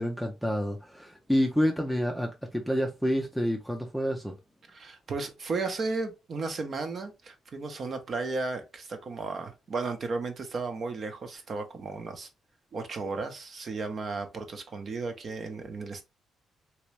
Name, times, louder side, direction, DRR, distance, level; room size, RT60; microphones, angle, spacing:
voice 1, 0.0-4.3, equal, ahead, 0.5 m, -28 dB
voice 2, 4.7-12.3 12.7-16.0, right 3 dB, 50° right, 0.9 m, -34 dB
3.0 x 2.9 x 3.2 m
cardioid pair, 90°, 0 cm